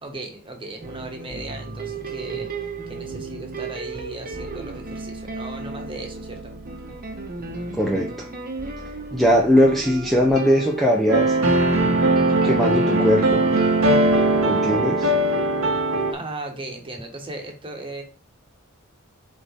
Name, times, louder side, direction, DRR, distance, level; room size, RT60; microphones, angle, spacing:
voice 1, 0.0-2.5 2.9-6.5 16.1-18.0, right 2 dB, 25° right, 3 dB, 1.5 m, -36 dB
sound 1, 0.8-14.4, right 3 dB, 40° right, 1.2 m, -34 dB
voice 2, 7.8-8.3 9.1-11.4 12.4-13.5 14.4-15.1, equal, ahead, -2 dB, 0.7 m, -20 dB
sound 2, 11.1-16.1, right 2 dB, 70° right, 1.2 m, -19 dB
7.7 x 3.9 x 3.5 m, 0.35 s
head